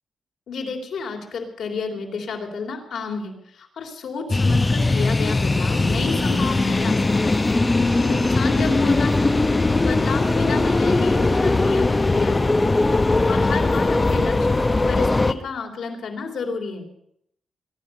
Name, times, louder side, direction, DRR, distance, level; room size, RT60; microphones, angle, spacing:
voice 1, 0.5-7.5 7.8-9.3 9.7-12.5 13.1-16.9, left 4 dB, 80° left, 2 dB, 3.2 m, -31 dB
sound 1, 4.3-15.3, left 2 dB, 25° left, 0.8 m, -20 dB
22.5 x 10.5 x 5.5 m, 0.74 s
cardioid pair, 80°, 0 cm